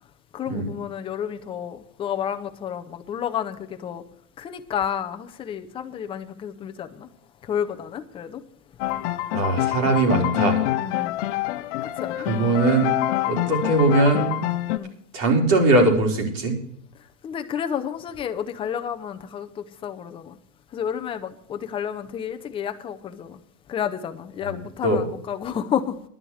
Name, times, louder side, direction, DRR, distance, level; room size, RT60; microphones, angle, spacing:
voice 1, 0.3-4.0 4.4-7.1 7.4-8.4 10.8-11.2 11.8-12.3 14.7-15.0 17.2-20.4 20.7-23.4 23.7-26.0, left 9 dB, 10° left, 0.6 m, -31 dB
sound 1, 8.8-14.8, left 15 dB, 45° left, 0.9 m, -26 dB
voice 2, 9.3-10.6 12.3-12.9 13.3-14.4 15.1-16.6 24.4-24.5 24.8-25.0, right 2 dB, 50° right, 4.4 m, -20 dB
11.0 x 9.8 x 6.4 m
hypercardioid pair, 145°, 46 cm